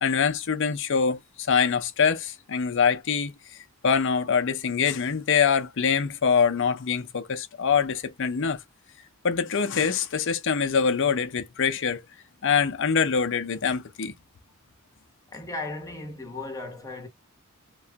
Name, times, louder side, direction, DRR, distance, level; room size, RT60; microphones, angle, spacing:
voice 1, 0.0-3.3 3.8-8.6 9.2-12.0 12.4-14.1, left 6 dB, 55° left, 0.6 m, -24 dB
voice 2, 15.3-17.1, left 2 dB, 15° left, 0.9 m, -36 dB
3.0 x 2.2 x 2.8 m
head